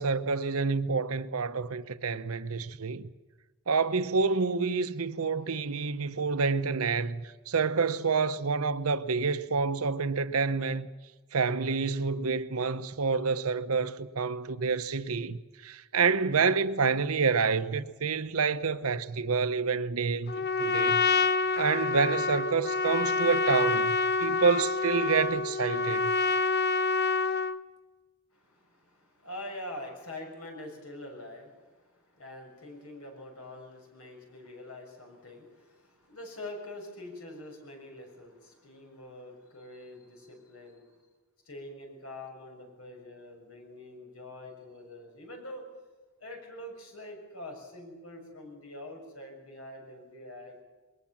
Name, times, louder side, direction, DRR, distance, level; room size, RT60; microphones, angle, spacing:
voice 1, 0.0-3.0 3.7-10.9 11.3-21.0 21.6-26.2, right 5 dB, 85° right, 0.9 m, -28 dB
Trumpet, 20.3-27.6, left 4 dB, 50° left, 0.7 m, -27 dB
voice 2, 28.3-41.0 41.4-45.7 46.2-50.6, left 1 dB, 85° left, 6.6 m, -45 dB
21.5 x 19.5 x 7.3 m
head